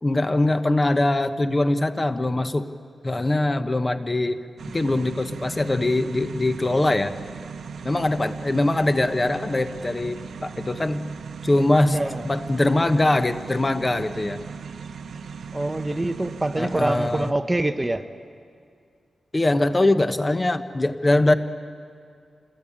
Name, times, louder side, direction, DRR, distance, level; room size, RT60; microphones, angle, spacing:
voice 1, 0.0-2.7 3.0-4.4 4.7-7.1 7.8-11.1 11.4-12.0 12.2-14.4 16.6-17.3 19.3-21.4, left 2 dB, 25° left, 10 dB, 1.0 m, -22 dB
sound 1, 4.6-17.3, right 6 dB, 80° right, 0.8 m, -38 dB
voice 2, 11.9-12.3 15.5-18.1, right 1 dB, 15° right, 9 dB, 0.8 m, -25 dB
26.0 x 20.5 x 8.7 m, 2.3 s
wide cardioid pair, 105°, 0 cm